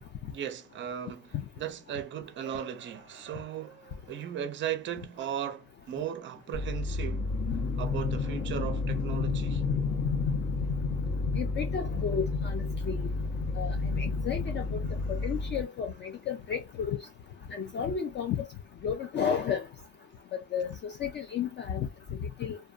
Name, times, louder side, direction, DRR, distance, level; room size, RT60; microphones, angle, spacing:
voice 1, 0.3-7.3 7.8-9.7, right 10 dB, 30° right, 0.5 m, -37 dB
sound 1, 6.5-15.6, left 4 dB, 60° left, 1.0 m, -30 dB
voice 2, 11.4-13.1 13.6-14.8 15.1-17.0 17.5-18.5 18.8-19.7 20.3-22.6, left 7 dB, 30° left, 0.4 m, -33 dB
2.5 x 2.2 x 2.3 m
cardioid pair, 115°, 37 cm